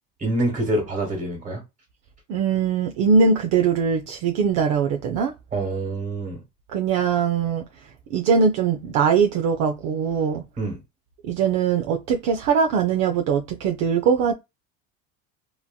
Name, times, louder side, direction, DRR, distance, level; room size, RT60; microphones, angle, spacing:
voice 1, 0.2-1.6 5.5-6.4 10.6-10.8, right 2 dB, 25° right, 1.6 m, -26 dB
voice 2, 2.3-5.3 6.7-10.4 11.2-14.3, right 6 dB, 55° right, 0.5 m, -21 dB
2.9 x 2.7 x 2.2 m
cardioid pair, 130°, 31 cm